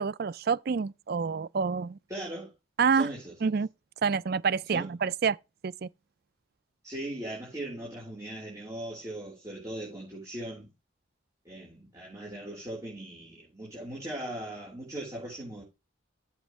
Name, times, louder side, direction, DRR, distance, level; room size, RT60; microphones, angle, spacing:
voice 1, 0.0-2.0 2.8-3.1 3.4-3.7 4.0-5.4 5.6-5.9, right 5 dB, 50° right, 0.4 m, -27 dB
voice 2, 2.1-2.5 2.9-3.3 4.7-4.9 6.8-10.7 11.4-15.6, right 1 dB, 15° right, 4.2 m, -39 dB
14.5 x 6.2 x 3.3 m
head